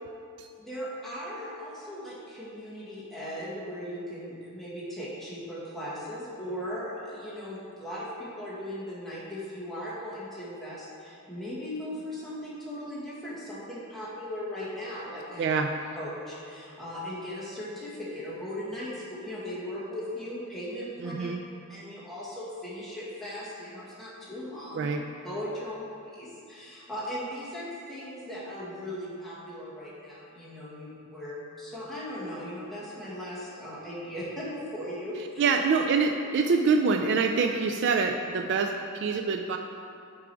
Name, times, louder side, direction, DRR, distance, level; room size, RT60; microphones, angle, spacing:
voice 1, 0.6-15.5 16.0-21.3 21.7-24.8 25.2-25.8 26.1-35.5, equal, ahead, -9 dB, 1.5 m, -38 dB
voice 2, 15.4-16.0 21.0-21.4 24.8-25.0 35.4-39.6, right 4 dB, 55° right, 5 dB, 0.3 m, -25 dB
6.0 x 4.8 x 4.5 m, 2.5 s
head